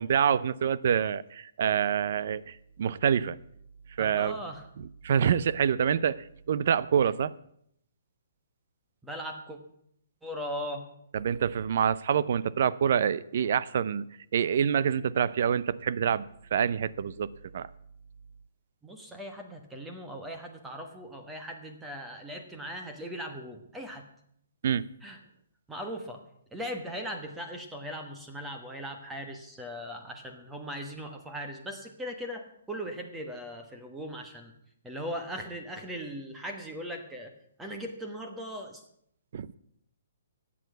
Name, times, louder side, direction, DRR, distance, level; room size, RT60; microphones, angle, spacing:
voice 1, 0.0-3.4 4.0-4.4 4.8-7.3 11.1-14.1 14.3-17.7 24.6-24.8 39.3-39.5, right 8 dB, 45° right, 0.5 m, -26 dB
voice 2, 4.0-4.6 9.0-9.6 10.2-10.8 18.8-24.0 25.0-25.2 25.7-26.2 26.5-34.5 34.8-37.3 37.6-38.8, equal, 5° right, 1.2 m, -39 dB
13.5 x 8.5 x 8.1 m
hypercardioid pair, 170°, 0 cm